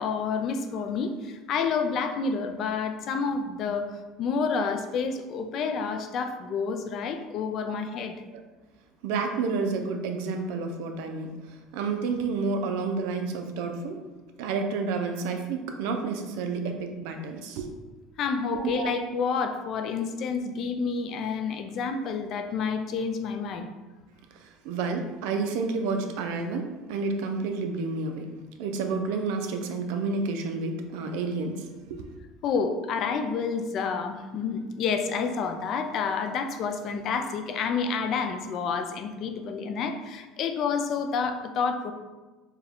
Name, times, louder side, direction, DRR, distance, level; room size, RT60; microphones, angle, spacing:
voice 1, 0.0-8.2 18.2-23.7 32.4-41.9, left 5 dB, 50° left, 6 dB, 0.4 m, -29 dB
voice 2, 9.0-14.0 14.4-17.7 18.5-18.9 24.3-28.3 28.6-32.1, right 4 dB, 80° right, 5 dB, 0.5 m, -30 dB
4.5 x 2.2 x 3.6 m, 1.2 s
cardioid pair, 130°, 0 cm